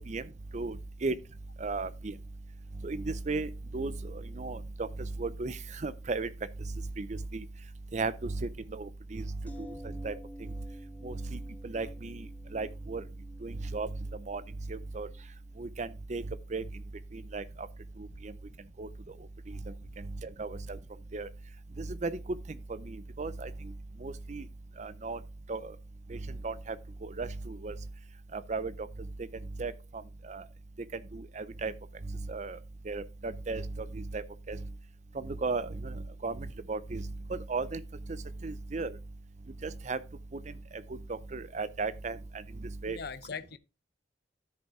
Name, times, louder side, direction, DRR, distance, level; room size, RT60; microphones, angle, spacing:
voice 1, 1.6-2.1 2.8-4.9 5.2-6.3 7.0-7.1 7.3-7.4 7.9-9.3 9.8-10.1 11.0-12.3 12.5-13.0 13.4-13.9 14.3-14.4 14.7-15.1 15.6-16.2 16.5-16.6 17.1-17.4 18.0-18.3 18.8-18.9 19.5-19.6 20.0-20.8 21.1-21.3 21.8-22.2 22.8-23.5 24.0-24.4 24.8-25.2 25.5-25.7 26.1-26.2 26.4-26.8 27.0-27.7 28.3-28.7 29.6-29.7 30.3-30.4 31.1-31.7 32.3-32.6 32.9-34.6 35.2-36.0 36.2-37.0 37.3-37.8 38.4-38.9 39.6-40.0 41.1-42.2 42.8-43.0, right 3 dB, 40° right, 0.5 m, -35 dB
sound 1, 9.5-19.3 19.6-19.7, equal, 10° left, 1.0 m, -52 dB
voice 2, 42.9-43.6, left 5 dB, 55° left, 0.6 m, -41 dB
12.5 x 5.3 x 3.6 m
head